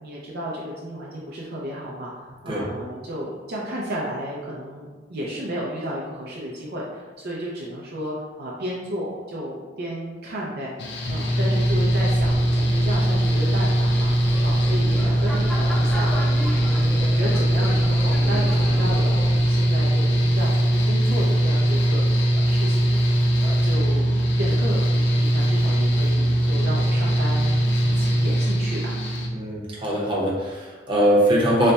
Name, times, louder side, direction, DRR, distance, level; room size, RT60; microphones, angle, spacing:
voice 1, 0.0-14.1 14.4-19.2 19.5-22.0 22.4-23.0 23.4-28.9, equal, 60° right, -4 dB, 0.5 m, -33 dB
Mechanical fan, 10.8-29.3, right 1 dB, 65° left, 0.5 m, -20 dB
sound 1, 11.6-19.4, equal, 5° left, 0.6 m, -34 dB
voice 2, 29.3-31.7, equal, 25° right, -5 dB, 0.9 m, -21 dB
3.2 x 2.2 x 4.0 m, 1.3 s
head